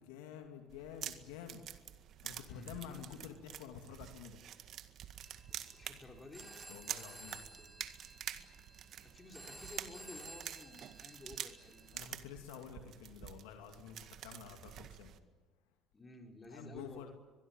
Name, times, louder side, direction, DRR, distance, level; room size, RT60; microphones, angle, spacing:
voice 1, 0.0-1.6 2.2-4.4 6.7-7.4 11.9-15.1 16.5-17.1, left 8 dB, 80° left, 5 dB, 2.6 m, -49 dB
sound 1, 0.7-15.2, right 10 dB, 55° right, 1.8 m, -48 dB
voice 2, 2.4-3.3 5.8-6.5 9.0-12.0 15.9-17.1, left 2 dB, 25° left, 3 dB, 5.2 m, -53 dB
Telephone, 5.2-12.1, right 2 dB, 10° right, 7.6 m, -55 dB
23.5 x 22.0 x 9.2 m, 1.4 s
hypercardioid pair, 70°, 0 cm